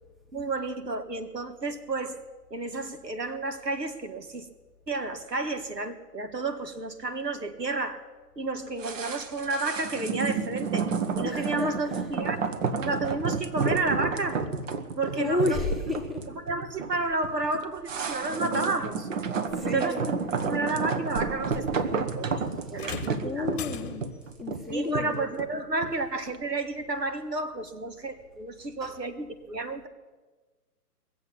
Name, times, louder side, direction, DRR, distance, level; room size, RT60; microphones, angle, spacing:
voice 1, 0.3-2.2 2.5-4.5 4.9-8.0 8.4-10.9 11.1-12.4 12.8-14.4 15.0-15.6 16.4-19.1 19.6-23.6 24.7-29.9, right 3 dB, 85° right, 9 dB, 1.6 m, -31 dB
sound 1, 8.8-26.0 26.3-26.4, right 5 dB, 50° right, 1.2 m, -31 dB
voice 2, 11.2-12.0 15.1-16.2 19.5-20.1 23.1-24.1 24.4-25.2 28.8-28.9, left 2 dB, ahead, 1 dB, 0.8 m, -31 dB
sound 2, 22.8-24.3 25.8-25.9 26.8-26.9, left 7 dB, 40° left, 1.0 m, -39 dB
20.5 x 7.8 x 8.5 m, 1.3 s
figure-of-eight pair, 125°, 48 cm